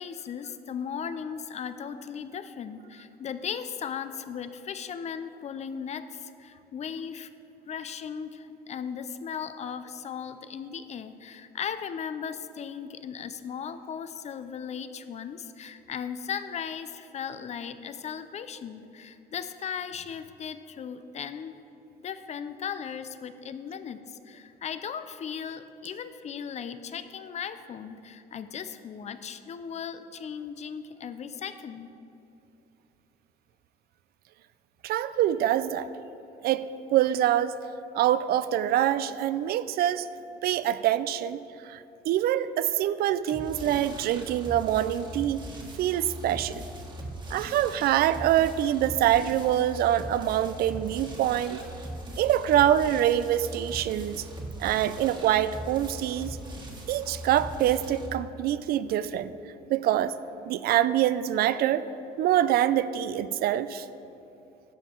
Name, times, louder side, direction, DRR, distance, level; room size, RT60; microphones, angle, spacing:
voice 1, 0.0-7.3 7.7-21.5 22.0-31.9, left 7 dB, 40° left, 11 dB, 0.5 m, -37 dB
voice 2, 34.8-35.9 36.4-37.6 37.9-40.1 40.4-45.4 45.8-46.6 47.3-51.6 52.2-54.2 54.6-56.4 56.9-59.3 59.7-60.1 60.5-61.8 62.2-63.9, right 11 dB, 65° right, 15 dB, 0.4 m, -25 dB
sound 1, 43.3-58.1, equal, 25° right, 1.6 m, -40 dB
11.5 x 7.2 x 4.5 m, 2.8 s
cardioid pair, 110°, 17 cm